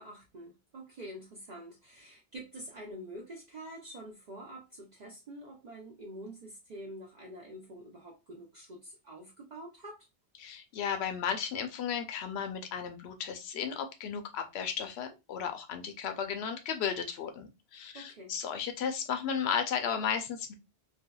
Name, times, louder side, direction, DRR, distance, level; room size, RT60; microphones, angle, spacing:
voice 1, 0.0-10.0 17.9-18.4, right 1 dB, 50° right, 0.6 m, -46 dB
voice 2, 10.4-20.5, left 7 dB, 85° left, 0.8 m, -34 dB
3.4 x 2.1 x 2.2 m
omnidirectional pair, 1.1 m